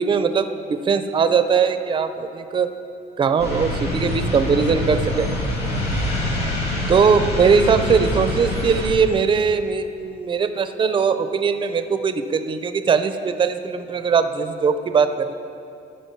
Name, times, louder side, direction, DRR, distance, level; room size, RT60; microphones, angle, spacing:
voice 1, 0.0-2.7 3.2-5.3 6.9-15.3, right 5 dB, 30° right, 10 dB, 0.6 m, -20 dB
sound 1, 3.4-8.9, left 1 dB, 80° left, 2.5 m, -25 dB
14.0 x 6.2 x 4.6 m, 2.6 s
cardioid pair, 110°, 17 cm